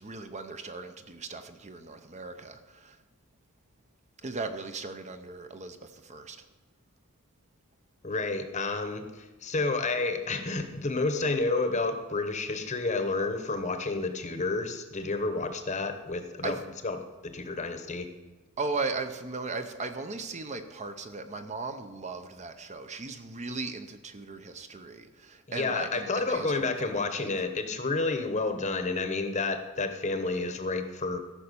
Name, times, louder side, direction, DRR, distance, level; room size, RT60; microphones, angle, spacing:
voice 1, 0.0-3.0 4.2-6.4 16.4-16.6 18.6-27.3, right 3 dB, 30° right, 8 dB, 0.7 m, -37 dB
voice 2, 8.0-16.6 16.8-17.0 17.2-18.1 25.5-31.2, left 3 dB, 35° left, 8 dB, 1.0 m, -30 dB
14.0 x 5.7 x 6.8 m, 1.2 s
head